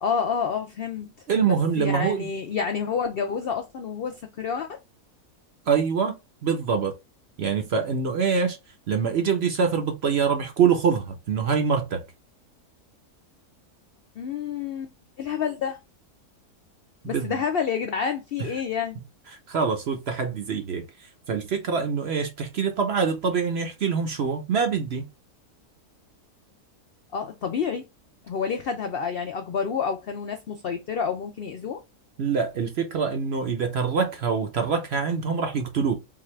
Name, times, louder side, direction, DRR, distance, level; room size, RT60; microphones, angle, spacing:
voice 1, 0.0-1.1 1.4-4.8 14.2-14.9 15.2-15.8 17.0-19.0 27.1-27.8 28.3-31.8, left 6 dB, 80° left, 0.5 m, -29 dB
voice 2, 1.3-2.3 5.7-6.2 6.4-6.9 7.4-8.6 8.9-12.0 17.0-17.4 19.5-25.1 32.2-35.9, right 6 dB, 55° right, 0.7 m, -25 dB
3.9 x 2.4 x 3.1 m
omnidirectional pair, 1.6 m